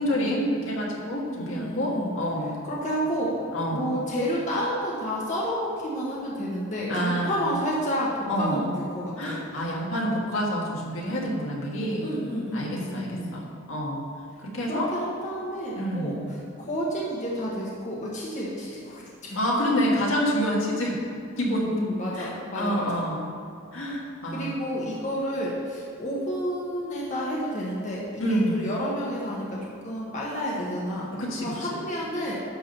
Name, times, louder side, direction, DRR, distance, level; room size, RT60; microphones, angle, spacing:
voice 1, 0.0-2.6 3.5-4.0 6.9-7.5 8.3-8.6 9.2-12.2 12.5-14.0 14.4-14.9 15.7-16.2 19.3-21.0 21.4-21.7 22.1-23.3 23.7-24.6 28.2-28.8 31.1-31.9, equal, 70° left, -3 dB, 1.8 m, -28 dB
voice 2, 1.3-2.1 2.6-3.4 3.7-9.4 12.0-13.3 14.7-16.2 16.6-19.4 21.4-23.0 24.3-31.1 31.4-32.3, equal, 35° left, -5 dB, 1.3 m, -30 dB
11.0 x 3.8 x 6.8 m, 2.4 s
head